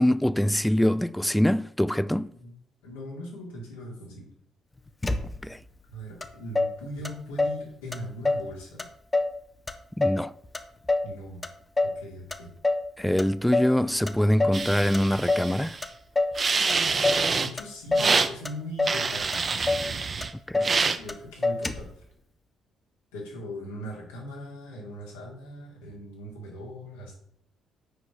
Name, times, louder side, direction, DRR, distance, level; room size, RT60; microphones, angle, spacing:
voice 1, 0.0-2.3 5.4-5.6 10.0-10.3 13.0-15.8 20.5-20.7, left 1 dB, 5° left, 0.4 m, -24 dB
voice 2, 2.8-4.3 5.9-8.8 11.0-11.4 11.8-12.5 17.1-19.5 20.9-21.9 23.1-27.1, equal, 85° left, 2.4 m, -40 dB
Motor vehicle (road), 5.0-5.7 6.2-6.3 6.6-7.6 7.9-8.5 8.8-9.4 9.7-11.1 11.4-12.0 12.3-12.9 13.2-13.8 14.1-14.7 14.9-15.5 15.8-16.4 16.7-17.3 17.6-18.2 18.5-19.0 19.3-19.4 19.7-19.9 20.2-20.8 21.1-21.2 21.4-22.0, left 2 dB, 25° left, 0.8 m, -27 dB
sound 1, 14.5-15.8 16.4-17.5 18.0-18.3 18.8-20.3 20.6-21.0, right 4 dB, 40° right, 0.7 m, -26 dB
6.3 x 4.6 x 5.8 m
hypercardioid pair, 50°, 0 cm